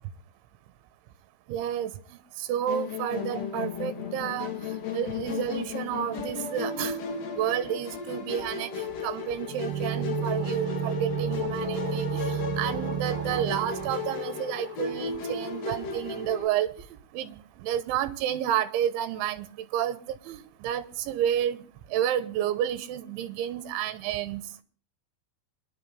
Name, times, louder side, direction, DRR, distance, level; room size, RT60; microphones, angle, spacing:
voice 1, 1.5-7.0 7.3-24.4, right 10 dB, 80° right, 3.4 m, -31 dB
Musical instrument, 2.7-16.5, left 6 dB, 75° left, 1.4 m, -35 dB
sound 1, 9.5-15.2 15.4-15.5, right 10 dB, 65° right, 3.3 m, -32 dB
25.5 x 11.0 x 3.3 m
omnidirectional pair, 5.5 m